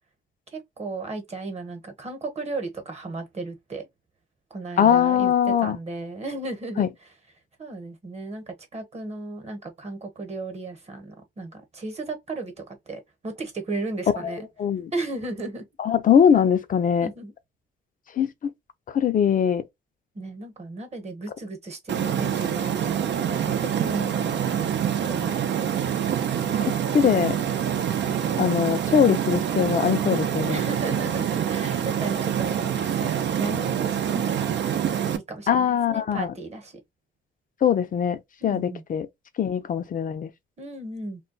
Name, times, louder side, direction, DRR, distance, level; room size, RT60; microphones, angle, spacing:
voice 1, 0.5-3.9 4.5-6.9 7.6-14.5 14.9-15.6 17.0-17.3 18.2-18.3 20.1-24.8 25.1-25.7 30.5-34.6 35.0-36.8 38.4-38.8 40.6-41.2, right 2 dB, 35° right, 1.1 m, -35 dB
voice 2, 4.8-5.8 6.8-6.9 14.6-14.9 15.8-17.1 18.2-18.5 18.9-19.6 26.9-27.4 28.4-30.6 35.5-36.3 37.6-39.1 39.4-40.3, left 8 dB, 45° left, 0.5 m, -21 dB
sound 1, 21.9-35.2, right 9 dB, 65° right, 0.6 m, -26 dB
2.3 x 2.2 x 3.9 m
cardioid pair, 90°, 20 cm